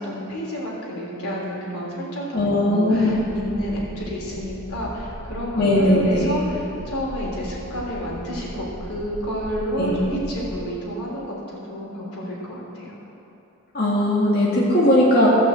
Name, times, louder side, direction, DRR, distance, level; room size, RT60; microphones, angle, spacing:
voice 1, 0.0-12.9, equal, 85° left, -4 dB, 3.4 m, -30 dB
voice 2, 2.3-3.2 5.6-6.4 9.8-10.0 13.7-15.3, left 1 dB, 45° left, -6 dB, 2.2 m, -18 dB
sound 1, 3.1-10.6, equal, 65° left, 2.3 m, -38 dB
15.5 x 6.2 x 7.8 m, 2.9 s
head